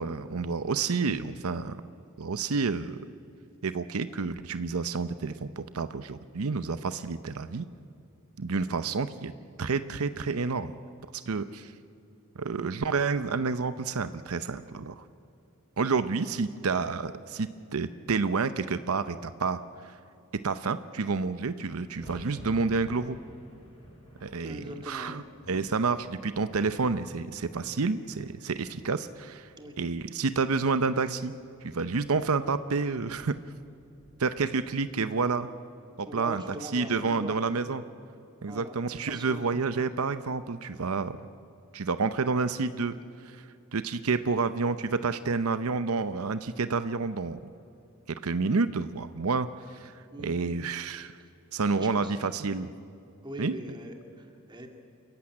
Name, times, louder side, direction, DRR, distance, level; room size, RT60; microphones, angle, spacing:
voice 1, 0.0-1.8 2.2-3.0 3.6-7.7 8.4-9.3 9.6-10.7 11.1-11.7 12.4-15.0 15.8-20.0 20.4-23.2 24.2-31.3 31.6-33.3 34.2-35.5 36.0-37.8 38.4-41.2 41.7-43.0 43.2-43.5 43.7-47.4 48.1-51.1 51.5-52.7 53.4-53.5, right 4 dB, 90° right, 12 dB, 0.7 m, -29 dB
sound 1, 21.4-35.4, equal, 30° left, 6.2 m, -53 dB
voice 2, 24.4-25.2 29.6-29.8 36.1-37.4 38.5-38.8 39.1-39.4 50.1-50.4 51.8-52.1 53.2-54.7, equal, 20° right, 4 dB, 2.2 m, -41 dB
27.5 x 15.0 x 9.8 m, 2.6 s
head